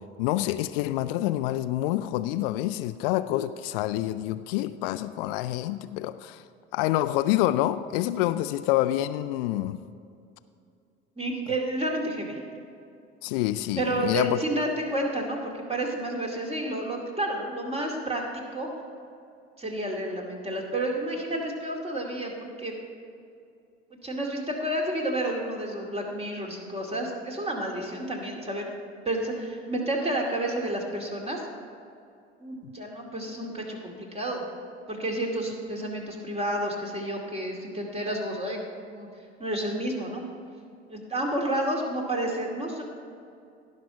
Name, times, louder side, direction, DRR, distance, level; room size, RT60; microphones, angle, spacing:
voice 1, 0.2-6.4 6.7-9.8 13.2-14.4, left 14 dB, 55° left, 12 dB, 0.4 m, -27 dB
voice 2, 11.2-12.4 13.8-18.2 18.5-18.7 19.6-22.8 24.0-28.7 29.0-31.4 32.4-34.4 34.9-39.1 39.4-40.2 40.9-42.8, right 1 dB, 20° right, 0 dB, 2.3 m, -30 dB
17.0 x 5.7 x 4.9 m, 2.4 s
figure-of-eight pair, 60°, 33 cm